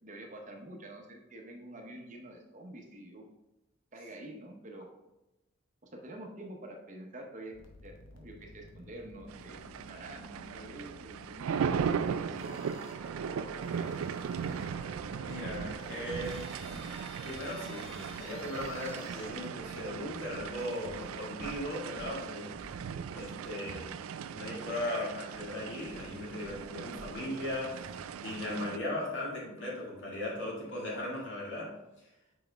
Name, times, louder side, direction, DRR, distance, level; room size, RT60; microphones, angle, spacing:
voice 1, 0.0-3.2 3.9-4.9 5.9-7.6 7.8-12.9 13.3-14.0, right 1 dB, 35° right, 2 dB, 0.8 m, -47 dB
sound 1, 7.5-19.3, left 2 dB, 70° left, 1.0 m, -52 dB
sound 2, 9.3-28.8, right 7 dB, 85° right, 0.3 m, -38 dB
sound 3, 14.9-18.7 19.0-19.2 19.7-24.9 25.2-28.6, right 1 dB, 70° right, 0.9 m, -53 dB
voice 2, 15.2-16.8 17.2-22.6 23.1-24.0 24.3-32.1, left 1 dB, 55° left, -3 dB, 2.1 m, -38 dB
5.9 x 5.0 x 3.4 m, 0.95 s
head